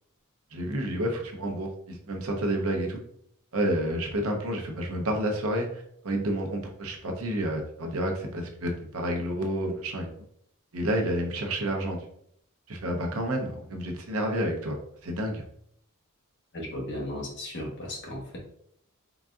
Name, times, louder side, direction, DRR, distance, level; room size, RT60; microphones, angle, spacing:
voice 1, 0.5-3.0 3.5-10.1 10.7-12.0 12.7-14.8 15.0-15.4, right 1 dB, 70° right, 2 dB, 0.8 m, -30 dB
voice 2, 16.5-18.4, left 1 dB, 55° left, -1 dB, 1.2 m, -35 dB
3.9 x 3.6 x 2.4 m, 0.68 s
head